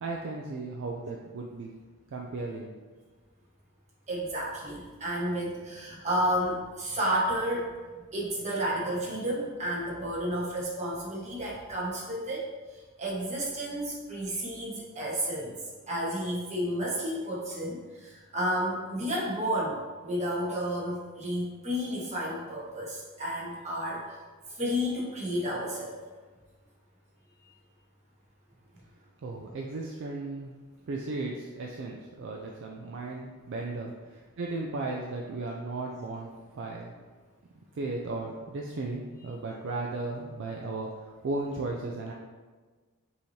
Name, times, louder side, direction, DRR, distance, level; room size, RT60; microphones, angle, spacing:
voice 1, 0.0-1.7 2.1-2.7 29.2-30.6 30.9-36.9 37.7-42.1, right 3 dB, 55° right, -1 dB, 0.4 m, -35 dB
voice 2, 4.1-7.7 8.1-15.6 15.9-24.2 24.5-26.0, equal, 30° right, -5 dB, 1.1 m, -31 dB
5.5 x 2.8 x 3.1 m, 1.4 s
head